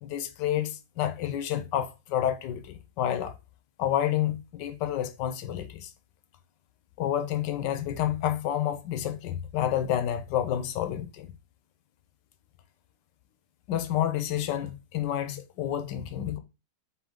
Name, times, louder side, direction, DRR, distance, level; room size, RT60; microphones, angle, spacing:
voice 1, 0.0-3.3 3.8-5.9 7.0-11.3 13.7-16.4, left 11 dB, 75° left, 1.2 m, -29 dB
3.9 x 3.6 x 3.6 m
omnidirectional pair, 2.0 m